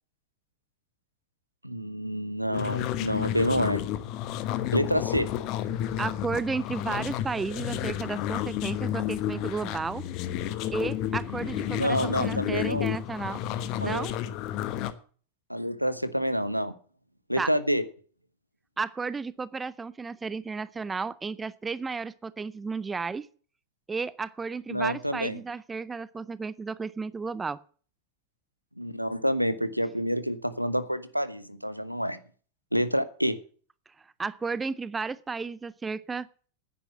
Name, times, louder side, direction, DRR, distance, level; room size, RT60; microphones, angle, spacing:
voice 1, 1.6-3.8 4.7-5.3 11.8-12.9 13.8-14.0 15.5-16.7 17.3-17.8 24.7-25.4 28.8-32.2 32.7-33.4, equal, 90° right, 13 dB, 1.1 m, -28 dB
sound 1, 2.5-14.9, left 11 dB, 40° left, 1.2 m, -31 dB
voice 2, 6.0-10.1 10.7-13.4 13.8-14.1 17.4-17.5 18.8-23.3 23.9-27.6 34.2-36.3, right 4 dB, 15° right, 19 dB, 0.5 m, -33 dB
9.9 x 9.9 x 8.1 m, 0.43 s
figure-of-eight pair, 90°, 0 cm